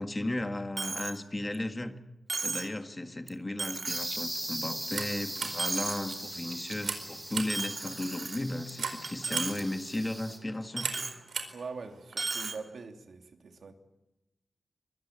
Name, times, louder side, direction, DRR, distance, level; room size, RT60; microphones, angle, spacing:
voice 1, 0.0-2.0 2.4-10.9, left 1 dB, 20° left, 7 dB, 1.7 m, -35 dB
Coin (dropping), 0.8-1.2 1.5-1.6 2.3-2.8 3.3-3.4 3.6-4.2 4.6-5.1 5.4-6.1 6.5-6.7 7.5-8.7 9.0-9.6 9.9-10.0 10.8-11.2 12.1-12.6, right 4 dB, 45° right, 2.5 m, -35 dB
sound 1, 3.9-10.4, right 1 dB, 10° right, 4.8 m, -40 dB
sound 2, 4.8-12.2, right 5 dB, 90° right, 4.4 m, -41 dB
voice 2, 11.5-13.7, right 4 dB, 70° right, 4 dB, 3.0 m, -43 dB
24.0 x 23.5 x 8.8 m, 0.96 s
wide cardioid pair, 155°, 0 cm